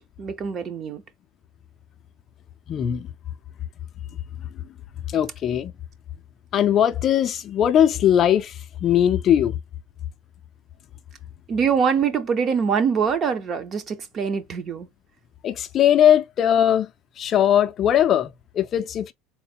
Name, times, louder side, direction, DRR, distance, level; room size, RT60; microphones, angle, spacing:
voice 1, 0.2-1.0 11.5-14.9, right 6 dB, 30° right, 0.6 m, -24 dB
voice 2, 2.7-3.1 5.1-5.7 6.5-9.6 15.4-16.9 17.2-19.1, left 10 dB, 30° left, 0.4 m, -20 dB
3.7 x 2.1 x 4.1 m
cardioid pair, 155°, 0 cm